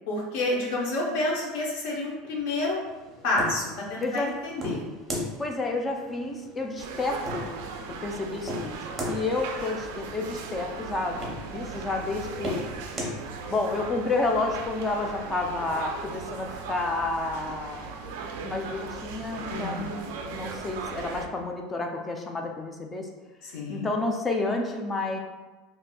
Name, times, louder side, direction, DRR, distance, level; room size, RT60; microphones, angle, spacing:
voice 1, 0.1-2.8 3.2-4.8 19.5-19.9 23.4-23.9, left 2 dB, 60° left, -2 dB, 0.8 m, -29 dB
sound 1, 2.9-13.2, left 1 dB, 15° right, 0.6 m, -38 dB
voice 2, 5.4-7.5 8.0-8.8 9.1-11.2 11.5-12.6 13.5-17.9 18.4-23.1 23.7-25.2, left 2 dB, 15° left, 2 dB, 0.3 m, -30 dB
sound 2, 6.8-21.3, right 4 dB, 80° right, 0.3 m, -38 dB
3.9 x 2.5 x 2.2 m, 1.2 s
supercardioid pair, 165°, 0 cm